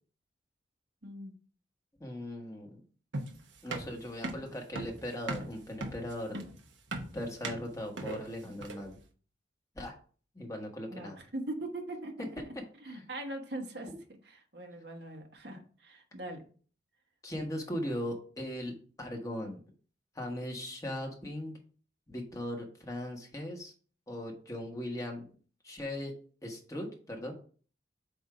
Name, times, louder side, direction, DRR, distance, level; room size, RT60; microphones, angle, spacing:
voice 1, 1.0-1.3 8.4-8.5 10.9-12.3 12.8-13.9 14.2-16.4, right 1 dB, 65° right, 3 dB, 1.2 m, -41 dB
voice 2, 2.0-2.8 3.6-6.4 7.1-9.0 9.7-9.9 10.3-11.2 12.9-13.0 17.2-19.6 20.1-21.5 22.1-23.7 24.1-25.3 25.6-26.1 26.4-27.3, left 1 dB, 20° left, 0 dB, 1.2 m, -39 dB
sound 1, 3.1-9.0, right 2 dB, 85° right, 1.0 m, -39 dB
8.0 x 2.7 x 4.8 m, 0.42 s
head